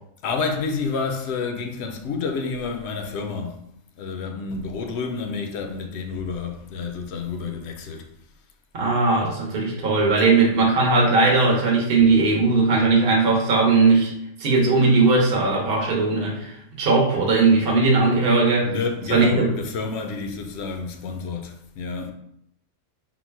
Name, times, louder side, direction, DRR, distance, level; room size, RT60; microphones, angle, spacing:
voice 1, 0.2-3.6 4.0-8.1 18.6-22.1, left 4 dB, 65° left, 0.7 m, -29 dB
voice 2, 8.7-14.1 14.4-18.7 19.1-19.5, right 3 dB, 50° right, 1.0 m, -18 dB
3.9 x 2.2 x 4.4 m
omnidirectional pair, 1.3 m